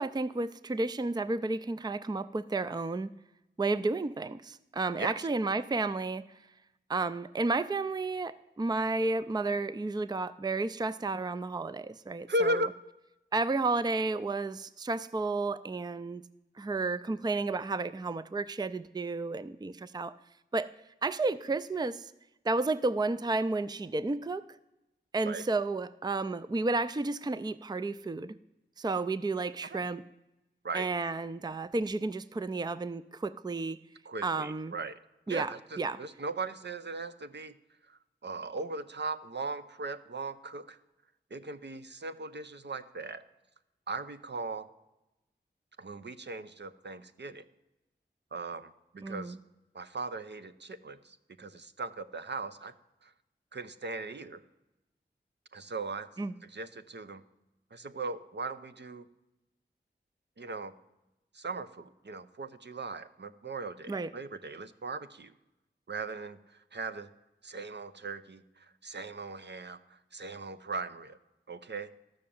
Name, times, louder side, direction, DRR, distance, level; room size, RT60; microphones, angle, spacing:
voice 1, 0.0-3.1 3.6-6.2 6.9-12.6 13.3-16.2 16.6-20.2 20.5-20.7 21.0-22.1 22.4-24.4 25.1-28.4 28.8-30.0 30.7-33.8 34.2-34.7 35.3-35.5 35.8-36.0 49.0-49.4 56.2-56.3 63.9-64.1, right 3 dB, 20° right, 15 dB, 0.4 m, -32 dB
voice 2, 12.3-12.7 25.2-25.4 29.7-29.9 30.6-30.9 34.0-35.0 35.3-37.5 37.9-40.8 41.3-43.2 43.9-44.7 45.8-47.4 48.3-49.4 49.7-52.7 53.0-53.1 53.5-54.4 55.5-56.1 56.4-57.2 57.7-59.1 60.4-60.7 61.3-65.3 65.9-67.1 67.4-71.2 71.5-71.9, right 2 dB, 65° right, 11 dB, 0.8 m, -38 dB
12.5 x 6.5 x 8.6 m, 0.94 s
cardioid pair, 40°, 19 cm